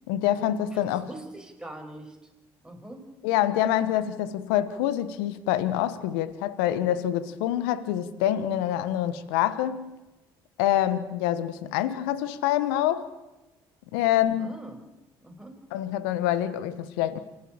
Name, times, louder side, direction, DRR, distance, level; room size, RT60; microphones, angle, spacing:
voice 1, 0.1-1.1 3.2-9.9 10.6-13.0 13.9-14.6 15.7-17.2, left 12 dB, 80° left, 1.1 m, -26 dB
voice 2, 1.0-2.2 2.6-3.1 14.4-14.8 15.2-15.6, right 1 dB, 5° right, 5.5 m, -42 dB
27.0 x 12.0 x 8.7 m
hypercardioid pair, 60°, 12 cm